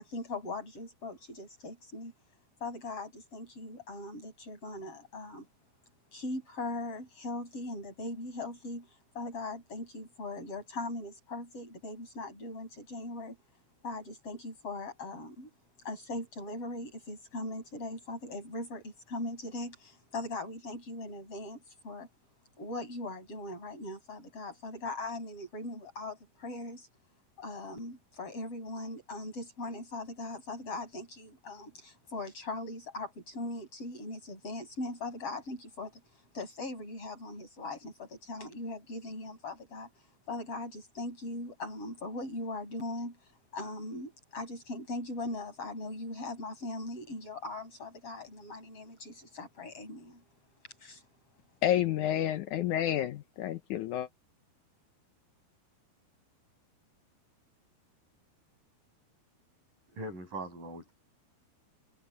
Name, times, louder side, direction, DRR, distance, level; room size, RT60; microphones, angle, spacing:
voice 1, 0.0-2.1 2.6-5.5 6.1-13.4 13.8-15.5 15.8-22.1 22.6-26.9 27.4-36.0 36.3-39.9 40.3-43.2 43.5-50.2 50.8-51.0, left 2 dB, 35° left, 8.3 m, -40 dB
voice 2, 51.6-54.1, left 11 dB, 90° left, 1.7 m, -29 dB
voice 3, 59.9-60.9, right 1 dB, 55° right, 9.2 m, -40 dB
omnidirectional pair, 4.7 m